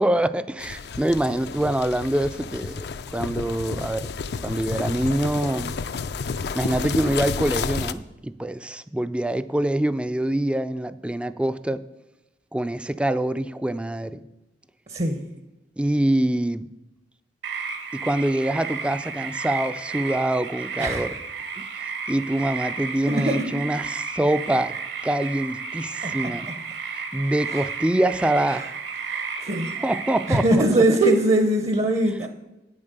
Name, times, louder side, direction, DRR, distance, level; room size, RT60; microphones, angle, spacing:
voice 1, 0.0-2.9 3.1-4.1 4.4-5.7 6.5-11.8 12.5-14.3 15.8-16.7 17.9-21.1 21.8-24.7 25.0-26.5 27.1-28.6 29.4-29.5 29.8-30.6 30.9-31.0, right 1 dB, 5° right, 13 dB, 0.3 m, -25 dB
sound 1, 0.6-7.9, left 5 dB, 65° left, 0.4 m, -31 dB
voice 2, 14.9-15.3 20.8-21.2 23.1-23.6 26.0-26.5 27.5-27.6 28.5-28.7 29.1-29.8 30.3-32.3, right 1 dB, 35° right, 5 dB, 0.6 m, -22 dB
sound 2, 17.4-30.4, right 5 dB, 75° right, 1.3 m, -33 dB
8.7 x 7.2 x 6.6 m, 0.99 s
head